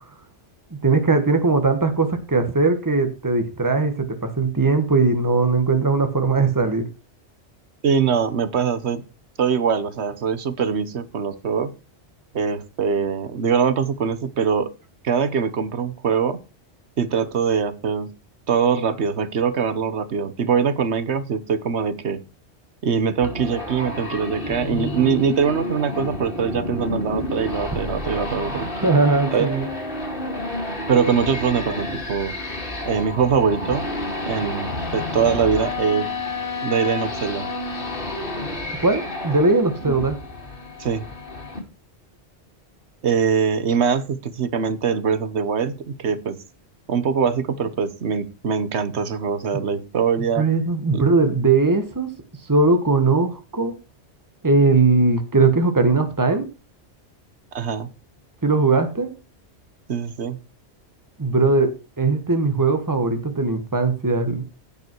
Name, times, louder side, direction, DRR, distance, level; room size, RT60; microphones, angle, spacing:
voice 1, 0.8-6.9 28.8-29.7 38.8-40.2 50.4-52.1 52.5-53.7 54.4-56.4 58.4-59.1 61.2-61.7 62.0-64.4, right 3 dB, 15° right, 7 dB, 1.5 m, -19 dB
voice 2, 7.8-9.0 9.4-11.7 12.3-14.7 15.0-16.4 17.0-18.1 18.5-22.2 22.8-28.7 29.3-29.5 30.9-32.3 32.8-33.9 34.3-36.1 36.6-37.5 39.8-40.0 40.8-41.0 43.0-46.4 46.9-50.5 50.9-51.0 57.5-57.9 59.9-60.4, right 6 dB, 75° right, 13 dB, 1.3 m, -22 dB
sound 1, 23.2-41.6, left 2 dB, 50° left, 2.6 m, -30 dB
16.0 x 5.6 x 4.6 m, 0.30 s
omnidirectional pair, 1.1 m